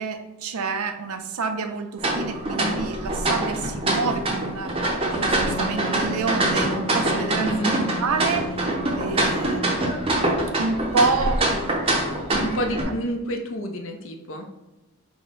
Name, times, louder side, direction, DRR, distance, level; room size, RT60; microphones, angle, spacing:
voice 1, 0.0-4.8 5.1-8.6 9.0-10.2 10.6-12.0 12.3-12.4, right 4 dB, 80° right, 7 dB, 0.5 m, -28 dB
sound 1, 2.0-12.8, right 1 dB, 25° right, 0.6 m, -24 dB
Wind instrument woodwind instrument, 5.2-10.6, right 1 dB, 10° left, 0.7 m, -36 dB
voice 2, 7.4-7.7 12.4-14.5, equal, 60° left, 4 dB, 0.6 m, -29 dB
4.8 x 2.2 x 3.9 m, 1.0 s
head